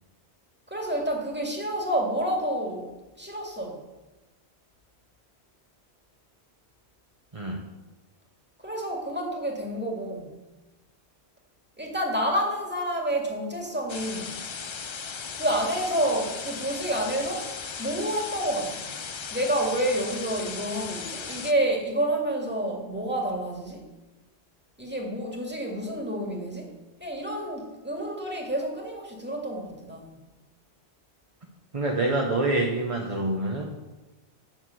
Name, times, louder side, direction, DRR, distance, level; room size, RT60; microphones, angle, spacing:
voice 1, 0.7-2.9 3.2-3.8 8.6-10.3 11.8-14.4 15.3-17.5 17.8-18.9 19.3-23.9 24.8-26.7 27.0-30.2, right 1 dB, 10° right, -1 dB, 2.1 m, -29 dB
sound 1, 13.9-21.5, left 6 dB, 45° left, 0.4 m, -37 dB
voice 2, 31.7-33.7, right 2 dB, 30° right, 0 dB, 1.0 m, -26 dB
9.1 x 6.6 x 7.7 m, 1.1 s
omnidirectional pair, 1.1 m